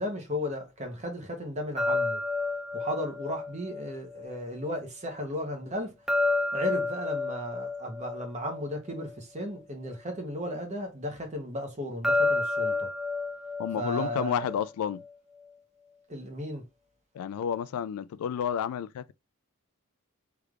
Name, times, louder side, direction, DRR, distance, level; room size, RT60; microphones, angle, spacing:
voice 1, 0.0-2.2 2.7-5.9 6.5-12.9 13.8-14.5 16.1-16.6, equal, 30° right, 0.9 m, -35 dB
sound 1, 1.8-4.8 6.1-9.6 12.0-15.1, left 3 dB, 5° right, 0.3 m, -31 dB
voice 2, 13.6-15.0 17.1-19.1, left 8 dB, 80° left, 0.3 m, -31 dB
3.3 x 3.3 x 2.4 m
head